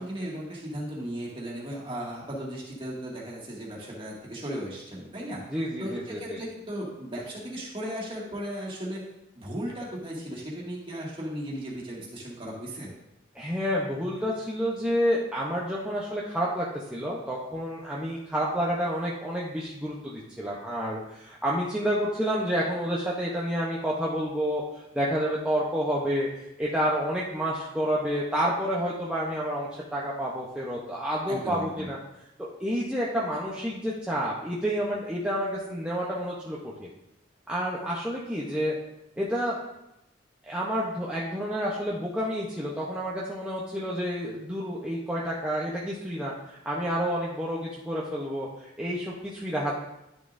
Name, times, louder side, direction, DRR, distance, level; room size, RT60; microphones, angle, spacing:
voice 1, 0.0-5.4 5.8-9.0 9.4-12.9 31.3-31.9, equal, 30° right, -4 dB, 2.0 m, -36 dB
voice 2, 5.5-6.4 13.3-32.0 32.4-36.9 37.5-38.8 39.2-39.6 40.5-49.7, equal, 5° right, -6 dB, 0.8 m, -29 dB
11.0 x 6.7 x 2.6 m, 0.88 s
head